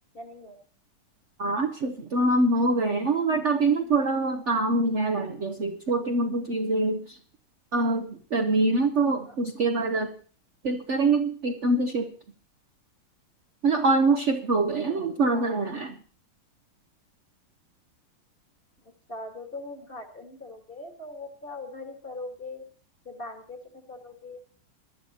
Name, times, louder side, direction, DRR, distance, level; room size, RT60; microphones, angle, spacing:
voice 1, 0.1-0.6 9.2-9.4 15.0-15.6 18.8-22.6 23.0-24.4, left 2 dB, 30° left, 4 dB, 1.6 m, -41 dB
voice 2, 1.4-7.2 7.7-10.1 10.6-12.1 13.6-15.9, right 2 dB, 55° right, 4 dB, 0.8 m, -24 dB
22.0 x 11.5 x 2.8 m, 0.42 s
omnidirectional pair, 2.2 m